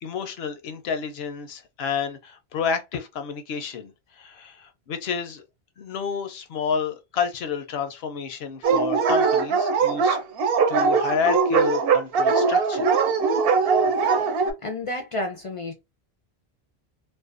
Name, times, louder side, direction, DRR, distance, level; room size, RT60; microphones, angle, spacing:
voice 1, 0.0-5.4 5.8-10.2 10.7-12.9, left 6 dB, 80° left, 0.8 m, -30 dB
Dog, 8.6-14.5, right 5 dB, 70° right, 0.8 m, -21 dB
voice 2, 14.6-15.7, left 2 dB, 50° left, 0.4 m, -30 dB
2.5 x 2.1 x 2.4 m
omnidirectional pair, 1.1 m